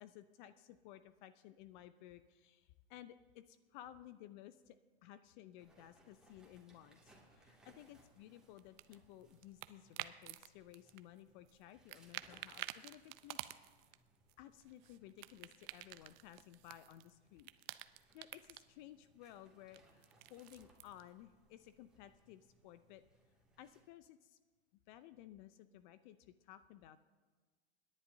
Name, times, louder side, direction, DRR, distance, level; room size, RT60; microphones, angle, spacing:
voice 1, 0.0-4.8 5.0-13.6 14.4-17.5 18.1-23.0 23.6-24.4 24.9-27.0, left 12 dB, 45° left, 13 dB, 0.6 m, -57 dB
sound 1, 5.6-23.8, right 1 dB, ahead, 2.3 m, -70 dB
sound 2, 8.6-10.5 10.7-11.6 11.9-13.9 14.3-17.1 17.4-18.6 19.7-21.0, right 18 dB, 45° right, 0.6 m, -49 dB
27.0 x 10.5 x 2.7 m, 1.4 s
hypercardioid pair, 110°, 32 cm